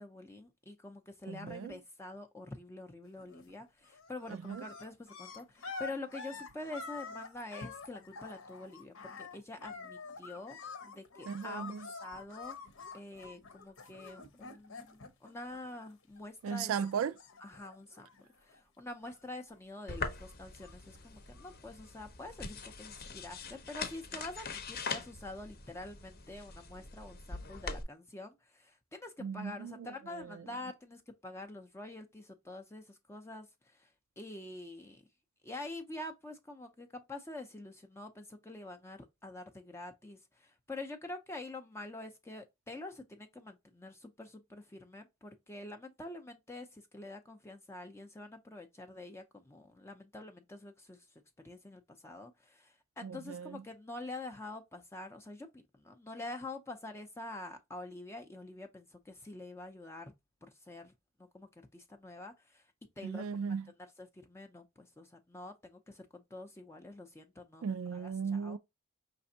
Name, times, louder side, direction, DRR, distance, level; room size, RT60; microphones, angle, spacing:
voice 1, 0.0-10.6 10.8-12.6 12.9-16.7 17.4-18.1 18.4-33.9 34.2-35.0 35.4-51.1 51.4-60.1 60.6-60.9 61.3-62.6 63.0-63.3 64.0-68.6, left 2 dB, 15° left, 0.5 m, -46 dB
voice 2, 1.3-1.8 4.3-4.6 11.3-11.9 16.4-17.1 29.2-30.4 53.0-53.6 63.0-63.7 67.6-68.6, right 6 dB, 70° right, 0.4 m, -37 dB
sound 1, 3.2-3.6 3.9-16.2 16.5-18.6 18.9-19.6 19.8-21.7 22.4-22.5, left 4 dB, 70° left, 0.9 m, -48 dB
sound 2, 19.9-27.8, left 4 dB, 50° left, 0.8 m, -43 dB
5.0 x 3.3 x 2.7 m
head